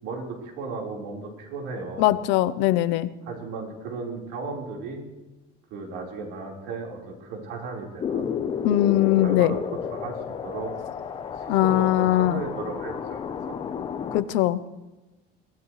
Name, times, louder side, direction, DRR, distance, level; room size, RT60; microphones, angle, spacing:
voice 1, 0.0-2.1 3.2-5.0 5.7-8.3 9.0-9.6 9.9-10.1 10.4-10.7 11.4-13.2 13.5-13.6, right 3 dB, 75° right, -1 dB, 4.3 m, -35 dB
voice 2, 2.0-3.1 8.6-9.5 11.5-12.4 14.1-14.6, left 14 dB, 70° left, 14 dB, 0.7 m, -21 dB
sound 1, 8.0-14.2, left 7 dB, 25° left, 0.8 m, -32 dB
23.0 x 17.0 x 3.2 m, 1.1 s
cardioid pair, 175°, 19 cm